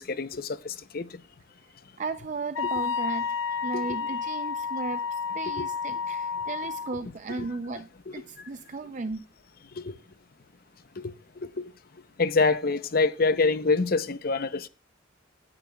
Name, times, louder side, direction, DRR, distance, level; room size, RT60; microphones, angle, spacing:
voice 1, 0.2-1.0 5.6-5.7 12.2-14.7, left 3 dB, 50° left, 0.6 m, -25 dB
voice 2, 2.0-3.4 3.6-9.2, right 3 dB, 40° right, 0.4 m, -35 dB
Wind instrument woodwind instrument, 2.5-7.0, left 6 dB, 85° left, 0.7 m, -31 dB
16.5 x 9.9 x 2.3 m
head